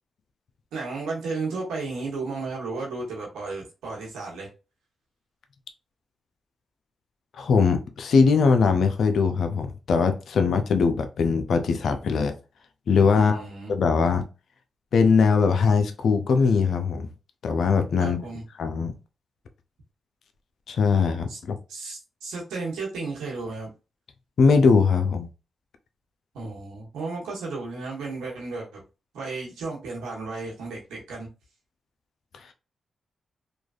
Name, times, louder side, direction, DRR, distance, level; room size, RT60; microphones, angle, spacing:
voice 1, 0.7-4.5 13.1-13.7 18.0-18.4 21.3-21.4 21.7-23.7 26.3-28.8 29.1-31.3, right 3 dB, 90° right, 1.1 m, -33 dB
voice 2, 7.4-12.3 12.9-13.4 13.7-14.2 14.9-17.1 17.4-18.3 18.6-18.9 20.7-21.6 24.4-25.3, left 5 dB, 75° left, 0.4 m, -21 dB
3.1 x 2.3 x 2.4 m
supercardioid pair, 50°, 0 cm